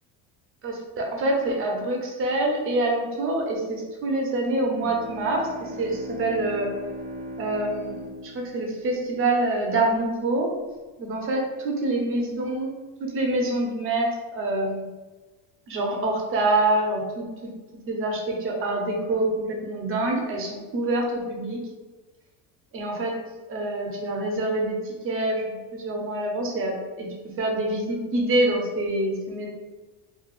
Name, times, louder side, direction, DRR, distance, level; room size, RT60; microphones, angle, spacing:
voice 1, 0.6-6.7 7.4-10.5 11.0-12.7 13.0-14.9 15.7-17.3 17.9-21.6 22.7-23.2 23.5-27.1 27.4-29.5, right 2 dB, 35° right, 0 dB, 0.7 m, -26 dB
Bowed string instrument, 4.6-9.7, equal, 90° right, 1.0 m, -39 dB
4.0 x 2.3 x 2.4 m, 1.2 s
cardioid pair, 145°, 37 cm